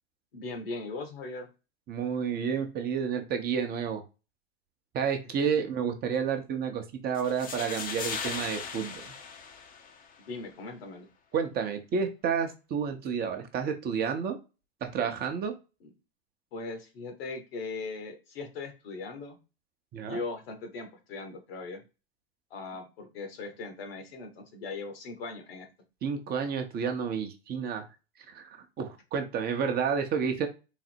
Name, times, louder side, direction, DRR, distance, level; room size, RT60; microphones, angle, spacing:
voice 1, 0.3-1.5 10.2-11.1 15.8-15.9 16.5-19.4 20.1-21.8 22.5-25.7, left 3 dB, 70° left, 5 dB, 1.3 m, -39 dB
voice 2, 1.9-4.0 4.9-9.1 11.3-14.4 14.8-15.5 19.9-20.2 26.0-27.8 28.3-30.5, right 6 dB, 30° right, 6 dB, 0.7 m, -30 dB
sound 1, 7.2-10.2, left 5 dB, 25° left, 0.7 m, -38 dB
4.0 x 2.0 x 4.4 m, 0.29 s
hypercardioid pair, 100°, 31 cm